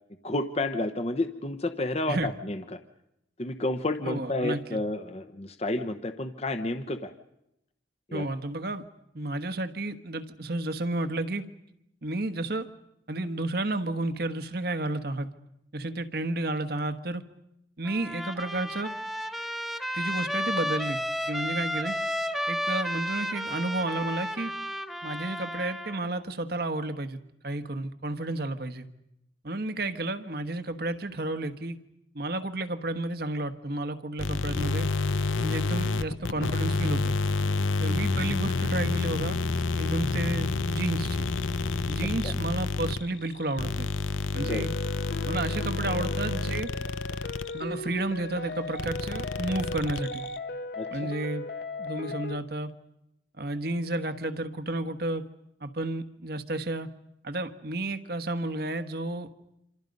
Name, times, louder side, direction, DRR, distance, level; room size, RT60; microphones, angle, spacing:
voice 1, 0.2-2.8 3.4-7.1 8.1-8.3 42.2-42.3 44.4-44.7 50.8-50.9, left 2 dB, 30° left, 9 dB, 0.9 m, -30 dB
voice 2, 4.0-4.8 8.1-8.8 9.1-11.5 12.0-12.7 13.1-15.3 15.7-17.2 17.8-18.9 19.9-21.0 21.3-22.0 22.5-24.5 25.0-28.9 29.4-31.8 32.1-34.9 35.4-37.1 37.8-39.4 39.8-41.3 41.9-43.9 44.3-44.7 45.2-46.7 47.5-50.2 50.9-51.5 51.8-52.7 53.4-55.3 55.6-56.9 57.2-59.3, right 2 dB, 55° right, 10 dB, 1.3 m, -31 dB
Trumpet, 17.9-26.0, equal, ahead, 1.1 m, -32 dB
sound 1, 34.2-47.6 48.8-50.4, left 3 dB, 85° left, 0.8 m, -29 dB
sound 2, 44.4-52.4, left 2 dB, 55° left, 1.1 m, -37 dB
27.5 x 26.5 x 5.3 m, 0.81 s
head